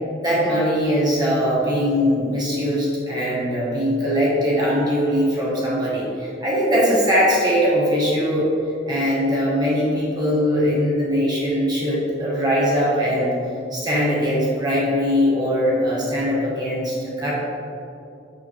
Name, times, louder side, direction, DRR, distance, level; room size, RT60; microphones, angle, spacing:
voice 1, 0.2-8.5 8.9-13.3 13.7-17.3, equal, 20° right, -6 dB, 1.0 m, -21 dB
6.4 x 6.0 x 3.0 m, 2.6 s
head